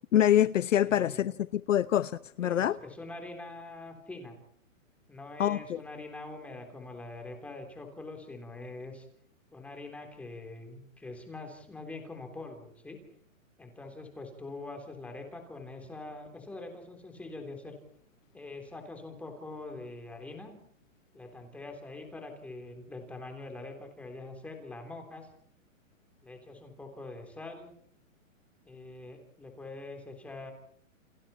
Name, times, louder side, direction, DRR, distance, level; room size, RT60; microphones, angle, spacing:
voice 1, 0.1-2.1 2.4-2.8 5.4-5.8, left 11 dB, 65° left, 0.9 m, -25 dB
voice 2, 0.8-1.4 2.4-4.4 5.1-9.1 9.5-13.0 13.6-17.8 18.3-20.6 21.1-25.3 26.2-27.7 28.7-30.5, left 2 dB, 5° left, 3.5 m, -44 dB
29.5 x 29.0 x 4.4 m
hypercardioid pair, 175°, 40 cm